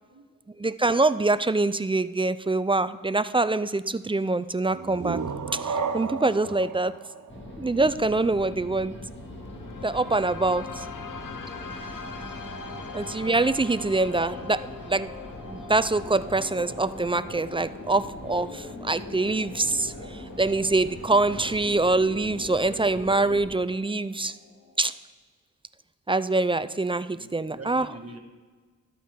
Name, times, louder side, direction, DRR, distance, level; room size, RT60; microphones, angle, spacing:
voice 1, 0.0-0.4 10.7-10.9 27.1-28.2, right 2 dB, 45° right, 2 dB, 1.6 m, -45 dB
voice 2, 0.6-5.2 5.5-6.9 7.6-8.9 9.8-10.9 12.9-15.1 15.5-24.4 24.8-24.9 26.1-27.9, right 2 dB, 15° right, 14 dB, 0.3 m, -25 dB
sound 1, 4.7-8.3, right 5 dB, 65° right, 0.7 m, -33 dB
sound 2, 7.3-23.5, left 1 dB, 35° left, 2.0 m, -41 dB
sound 3, 9.0-25.0, left 4 dB, 70° left, 0.9 m, -44 dB
13.0 x 8.4 x 3.7 m, 1.4 s
wide cardioid pair, 65°, 33 cm